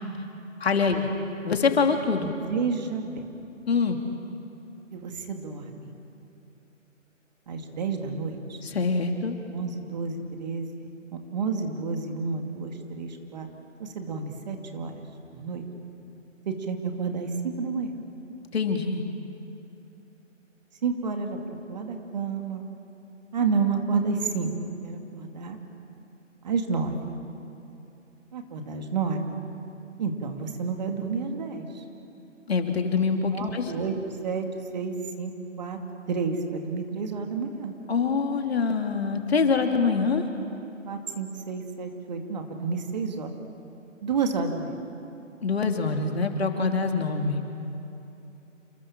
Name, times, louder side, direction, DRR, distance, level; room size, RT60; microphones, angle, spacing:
voice 1, 0.6-1.1 1.4-2.3 3.7-4.0 8.6-9.4 18.5-19.1 32.5-33.7 37.9-40.2 45.4-47.5, left 5 dB, 50° left, 4 dB, 2.9 m, -24 dB
voice 2, 2.2-3.2 4.9-5.9 7.5-8.6 9.5-10.9 11.3-13.5 13.8-15.0 15.3-15.6 16.5-17.9 20.8-21.4 21.7-22.7 23.3-24.6 24.8-25.6 26.4-27.1 28.3-29.2 30.0-31.8 33.3-33.9 34.2-34.4 34.7-35.3 35.6-35.8 36.1-37.7 40.9-43.3 44.0-44.8, right 5 dB, 35° right, 4 dB, 2.5 m, -30 dB
28.5 x 26.0 x 7.5 m, 2.8 s
figure-of-eight pair, 150°, 39 cm